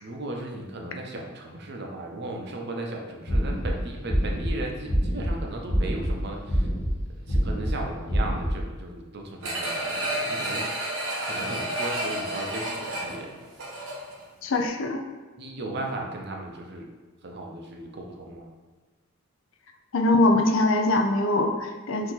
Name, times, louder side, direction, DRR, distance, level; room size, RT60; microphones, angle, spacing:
voice 1, 0.0-6.7 7.3-10.6 11.2-13.4 15.4-16.9 17.2-18.5, right 2 dB, 50° right, 1 dB, 0.6 m, -36 dB
sound 1, 3.3-3.7 4.1-4.5 4.9-5.3 5.7-6.1 6.5-6.9 7.3-7.7 8.1-8.5, equal, 45° left, 1.4 m, -25 dB
sound 2, 9.4-14.2 14.6-14.7, right 1 dB, 75° right, 1.1 m, -30 dB
voice 2, 14.4-15.0 19.9-22.1, left 2 dB, 65° left, 4 dB, 0.5 m, -22 dB
4.6 x 2.8 x 3.9 m, 1.3 s
head